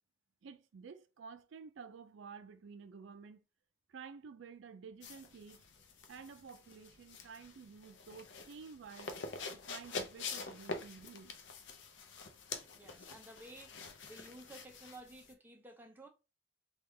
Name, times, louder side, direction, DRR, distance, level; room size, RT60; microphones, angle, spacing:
voice 1, 0.4-3.4 3.9-5.6 6.1-9.1 9.5-11.4, right 5 dB, 80° right, 0.4 m, -52 dB
sound 1, 5.0-15.3, left 4 dB, 75° left, 0.5 m, -46 dB
voice 2, 12.7-13.7 14.1-16.1, right 1 dB, 10° right, 0.5 m, -54 dB
3.4 x 2.3 x 3.2 m
head